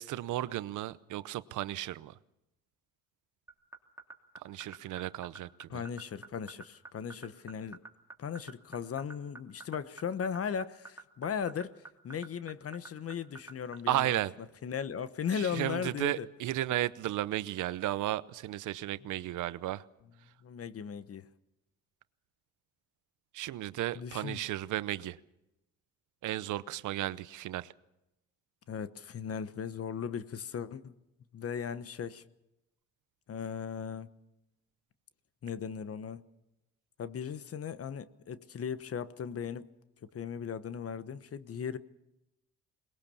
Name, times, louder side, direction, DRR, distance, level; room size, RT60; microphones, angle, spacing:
voice 1, 0.0-2.1 4.4-5.8 13.9-14.3 15.4-19.8 23.3-25.2 26.2-27.7, right 14 dB, 80° right, 0.8 m, -34 dB
sound 1, 3.5-14.0, right 3 dB, 10° right, 3.0 m, -45 dB
voice 2, 5.7-7.8 8.2-14.2 14.6-16.3 20.4-21.3 23.9-24.4 28.7-30.9 31.3-32.2 33.3-34.1 35.4-36.2 37.0-39.7 40.0-41.8, left 7 dB, 50° left, 1.1 m, -37 dB
22.0 x 20.0 x 7.0 m
cardioid pair, 90°, 30 cm